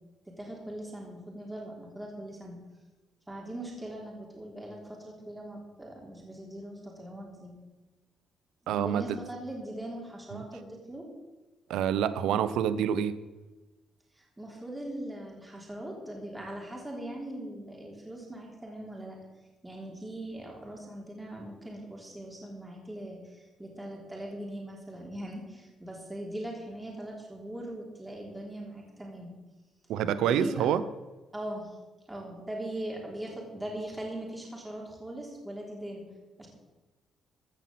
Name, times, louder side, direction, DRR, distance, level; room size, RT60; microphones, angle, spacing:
voice 1, 0.3-2.6 3.3-7.5 8.6-11.1 14.2-19.2 19.6-29.3 30.2-30.7 31.3-31.8 32.1-36.0 36.4-36.5, right 1 dB, 10° right, -2 dB, 3.4 m, -40 dB
voice 2, 8.7-9.2 10.3-10.4 11.7-13.2 29.9-30.8, right 9 dB, 85° right, 14 dB, 0.6 m, -27 dB
15.0 x 5.9 x 7.5 m, 1.2 s
cardioid pair, 90°, 0 cm